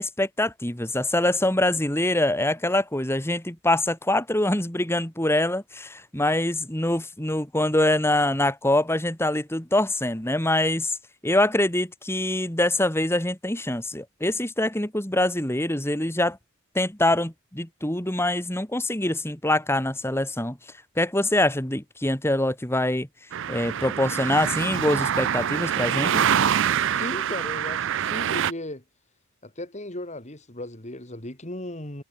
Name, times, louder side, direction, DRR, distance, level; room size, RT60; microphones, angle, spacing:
voice 1, 0.0-11.0 11.2-16.4 16.7-20.6 21.0-23.1 23.5-26.2, left 1 dB, 10° left, 2.5 m, -24 dB
sound 1, 23.3-28.5, right 9 dB, 55° right, 0.5 m, -25 dB
voice 2, 26.9-28.8 29.4-32.0, left 1 dB, 30° left, 3.1 m, -36 dB
head